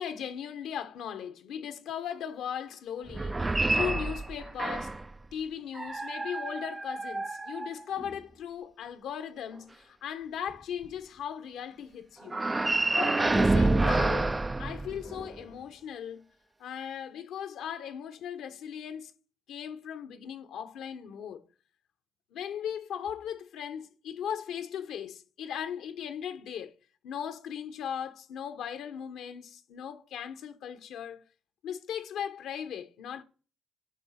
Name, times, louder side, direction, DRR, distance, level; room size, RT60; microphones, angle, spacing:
voice 1, 0.0-5.0 5.3-12.4 12.9-16.2 16.6-19.1 19.5-21.4 22.3-26.8 27.0-31.2 31.6-33.2, left 8 dB, 80° left, 1.0 m, -38 dB
sound 1, 3.1-5.1 5.7-8.2 12.3-15.4, right 2 dB, 20° right, 0.3 m, -28 dB
10.5 x 4.2 x 5.7 m
cardioid pair, 90°, 0 cm